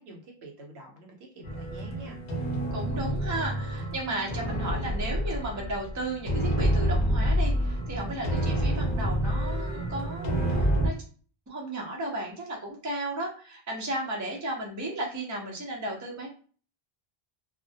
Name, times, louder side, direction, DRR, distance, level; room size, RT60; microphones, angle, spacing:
voice 1, 0.0-2.2, right 1 dB, 85° right, 1 dB, 1.0 m, -47 dB
sound 1, 1.4-10.9, equal, 50° left, 0.7 m, -28 dB
voice 2, 2.7-10.9 11.5-16.3, right 1 dB, 20° right, 0 dB, 0.5 m, -34 dB
2.2 x 2.1 x 2.7 m, 0.41 s
omnidirectional pair, 1.1 m